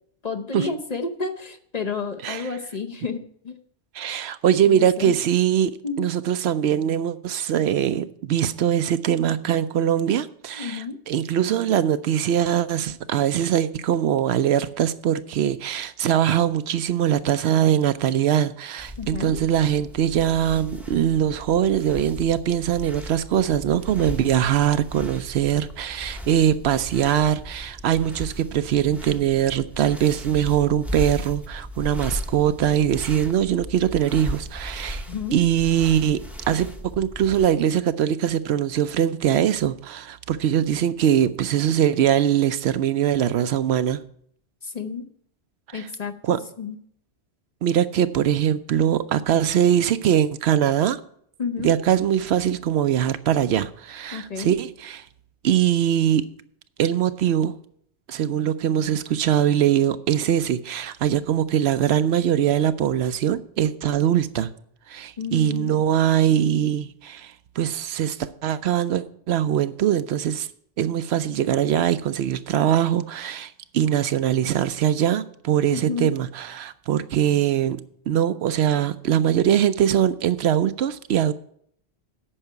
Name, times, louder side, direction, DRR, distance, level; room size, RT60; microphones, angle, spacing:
voice 1, 0.2-3.6 4.6-5.1 5.8-6.1 10.6-11.0 19.0-19.4 35.1-35.4 44.6-45.0 45.7-46.8 51.4-51.7 54.1-54.5 65.2-65.8 75.7-76.2, left 5 dB, 40° left, 0.8 m, -31 dB
voice 2, 3.9-35.0 35.3-36.2 36.5-44.0 45.7-45.9 46.2-46.4 47.6-51.0 51.6-55.1 55.4-56.2 56.8-57.5 58.1-64.5 64.9-70.5 70.8-81.3, right 10 dB, 75° right, 0.8 m, -22 dB
sound 1, 18.8-37.5, equal, ahead, 0.8 m, -36 dB
8.8 x 5.7 x 8.2 m
omnidirectional pair, 1.1 m